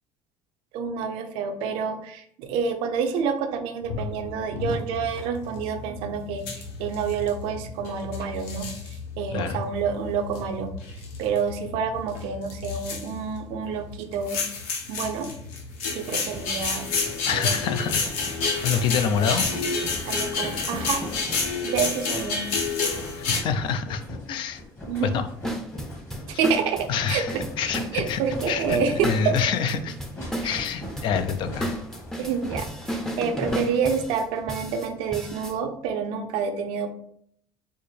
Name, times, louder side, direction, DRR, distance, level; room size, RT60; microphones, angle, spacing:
voice 1, 0.7-8.7 9.2-10.7 11.2-14.4 14.9-15.3 15.9-16.9 17.3-17.5 19.1-19.3 20.1-21.2 21.6-22.7 24.9-25.1 26.3-27.2 27.6-29.3 30.4-30.6 32.2-36.9, right 6 dB, 80° right, 6 dB, 0.5 m, -28 dB
sound 1, 3.8-23.4, left 4 dB, 90° left, 0.8 m, -30 dB
voice 2, 9.3-9.6 17.3-18.1 18.6-19.5 23.2-24.6 25.0-25.3 26.9-28.2 28.5-30.0 30.4-31.7, left 7 dB, 60° left, 9 dB, 0.4 m, -27 dB
sound 2, 16.1-33.5, left 1 dB, 25° left, 1.3 m, -39 dB
sound 3, 25.4-35.6, equal, 5° left, 0.6 m, -33 dB
4.3 x 2.0 x 3.2 m, 0.67 s
supercardioid pair, 100°, 9 cm